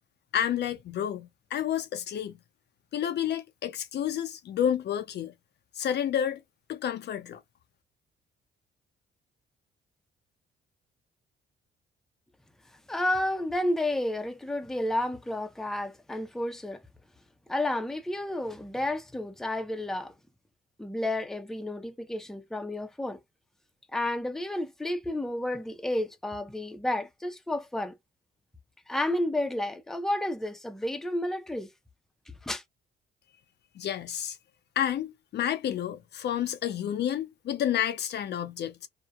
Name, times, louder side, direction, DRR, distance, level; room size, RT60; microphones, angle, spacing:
voice 1, 0.3-2.3 2.9-5.3 5.8-6.4 6.7-7.4 33.8-34.4 34.8-38.9, left 10 dB, 60° left, 0.5 m, -30 dB
voice 2, 12.9-16.8 17.5-20.1 20.8-23.2 23.9-27.9 28.9-31.7 32.4-32.6, left 1 dB, ahead, 0.5 m, -31 dB
2.7 x 2.1 x 2.3 m
cardioid pair, 90°, 20 cm